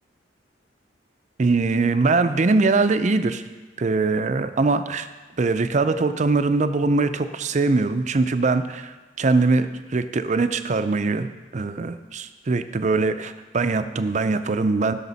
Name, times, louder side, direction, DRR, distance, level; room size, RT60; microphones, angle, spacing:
voice 1, 1.4-3.4 3.8-5.1 5.4-11.3 11.5-14.9, right 3 dB, 40° right, 10 dB, 0.5 m, -22 dB
16.5 x 5.9 x 4.1 m, 1.3 s
head